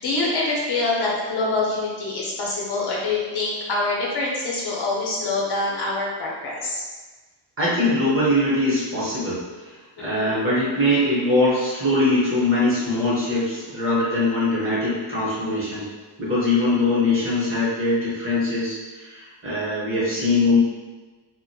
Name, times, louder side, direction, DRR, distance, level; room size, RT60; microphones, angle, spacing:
voice 1, 0.0-6.8 10.0-10.4, left 2 dB, 65° left, -4 dB, 0.7 m, -25 dB
voice 2, 7.6-9.7 10.0-15.9 16.2-20.6, left 2 dB, 30° right, -8 dB, 0.8 m, -22 dB
2.4 x 2.1 x 2.6 m, 1.3 s
wide cardioid pair, 145°, 43 cm